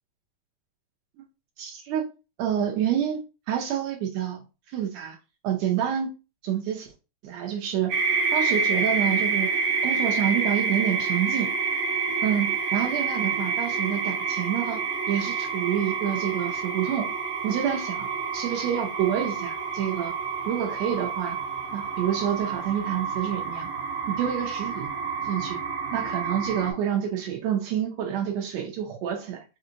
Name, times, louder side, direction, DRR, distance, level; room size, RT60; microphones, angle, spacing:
voice 1, 1.6-2.1 2.4-3.2 3.5-4.4 4.7-5.2 5.4-6.1 6.4-6.9 7.2-7.9 8.3-9.5 9.8-11.5 12.2-17.1 17.4-20.1 20.4-21.4 21.7-23.7 24.1-24.9 25.2-25.6 25.9-29.4, right 9 dB, 85° right, 1.5 m, -28 dB
sound 1, 7.9-26.7, right 5 dB, 70° right, 2.3 m, -28 dB
5.1 x 2.8 x 2.5 m
omnidirectional pair, 3.9 m